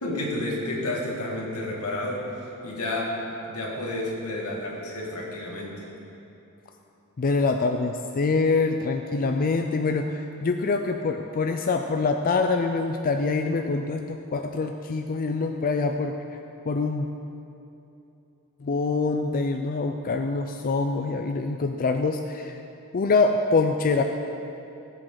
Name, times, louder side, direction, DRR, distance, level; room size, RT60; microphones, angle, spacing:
voice 1, 0.0-2.3 2.6-3.2 3.5-5.9, left 1 dB, 85° left, -2 dB, 2.2 m, -30 dB
voice 2, 7.2-16.4 16.7-17.1 18.6-22.6 22.9-24.0, left 3 dB, 40° left, 5 dB, 0.4 m, -25 dB
17.5 x 7.9 x 3.9 m, 2.9 s
head